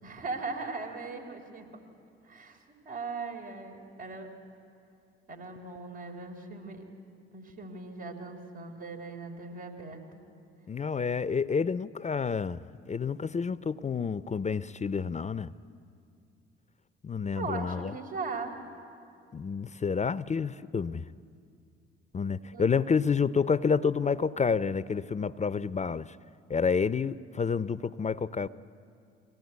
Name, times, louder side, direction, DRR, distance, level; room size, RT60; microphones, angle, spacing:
voice 1, 0.0-1.7 2.2-2.6 2.8-4.3 5.3-6.8 7.3-10.2 17.3-18.5 22.5-22.6, right 4 dB, 85° right, 3.7 m, -39 dB
voice 2, 10.7-15.5 17.0-17.9 19.3-21.1 22.1-26.2 26.5-28.5, left 5 dB, 25° left, 0.5 m, -29 dB
22.5 x 17.0 x 9.5 m
hypercardioid pair, 50°, 30 cm